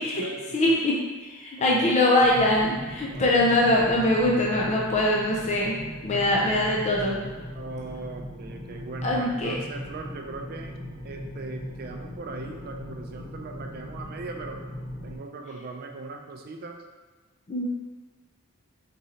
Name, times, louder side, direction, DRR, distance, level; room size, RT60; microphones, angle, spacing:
voice 1, 0.0-0.8 1.6-2.3 3.1-3.4 6.1-6.4 7.5-10.7 11.0-14.6 15.0-16.8, right 3 dB, 45° right, 3 dB, 0.4 m, -39 dB
voice 2, 0.5-5.8 6.0-7.2 9.0-9.6 17.5-17.6, left 1 dB, 30° left, -3 dB, 0.4 m, -23 dB
sound 1, 2.2-15.2, equal, 90° left, 1.4 m, -39 dB
3.7 x 3.1 x 2.8 m, 1.3 s
head